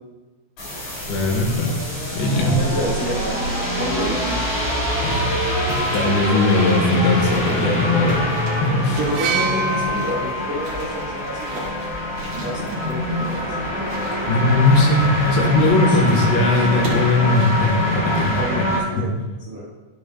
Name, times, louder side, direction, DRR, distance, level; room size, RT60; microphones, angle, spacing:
sound 1, 0.6-18.8, left 1 dB, 50° left, 4.4 m, -24 dB
voice 1, 1.1-1.8 2.1-2.6 5.0-5.3 5.7-8.3 8.6-9.0 14.2-18.6 19.0-19.1, left 2 dB, 75° left, 1 dB, 3.3 m, -19 dB
voice 2, 2.4-4.5 9.0-11.7 12.3-13.5 15.9-16.3 18.3-19.1 19.5-19.7, right 1 dB, 60° right, -9 dB, 1.8 m, -29 dB
sound 2, 5.1-18.4, equal, 40° right, 2.3 m, -39 dB
sound 3, 9.1-13.0 14.0-14.1, right 2 dB, 80° right, 3.4 m, -28 dB
13.5 x 7.7 x 2.2 m, 1.3 s
omnidirectional pair, 5.2 m